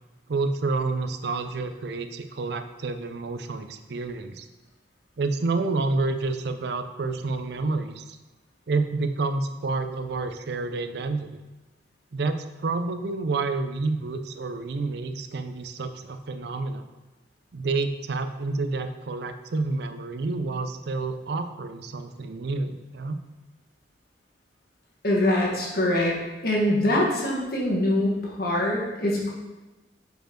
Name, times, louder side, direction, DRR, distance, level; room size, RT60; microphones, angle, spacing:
voice 1, 0.3-4.5 5.2-8.2 8.7-11.4 12.1-16.8 17.5-23.2, right 3 dB, 60° right, 8 dB, 0.4 m, -29 dB
voice 2, 25.0-29.3, left 1 dB, 55° left, -3 dB, 1.4 m, -24 dB
5.2 x 4.5 x 4.5 m, 1.1 s
head